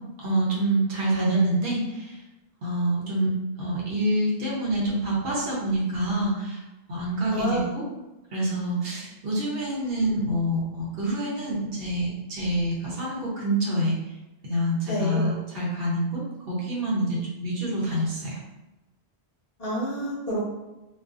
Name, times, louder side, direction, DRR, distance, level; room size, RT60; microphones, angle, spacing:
voice 1, 0.2-2.2 2.6-3.3 3.6-6.6 6.9-7.8 8.3-14.0 14.4-16.2 16.5-18.4, right 1 dB, 65° right, -5 dB, 1.0 m, -26 dB
voice 2, 1.1-1.5 7.3-7.7 14.9-15.3 19.6-20.4, right 1 dB, 40° left, -7 dB, 0.7 m, -28 dB
2.5 x 2.4 x 2.4 m, 1.0 s
omnidirectional pair, 1.1 m